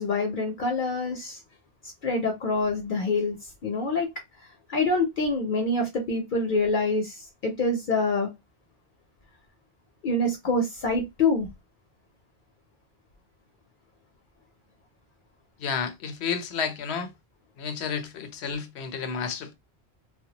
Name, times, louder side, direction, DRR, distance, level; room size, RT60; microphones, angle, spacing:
voice 1, 0.0-1.4 2.0-3.4 3.6-4.1 4.7-8.3 10.0-11.5, left 2 dB, 60° left, 0.7 m, -26 dB
voice 2, 15.6-17.1 17.6-19.5, left 6 dB, 85° left, 0.8 m, -31 dB
2.2 x 2.1 x 2.7 m
omnidirectional pair, 1.1 m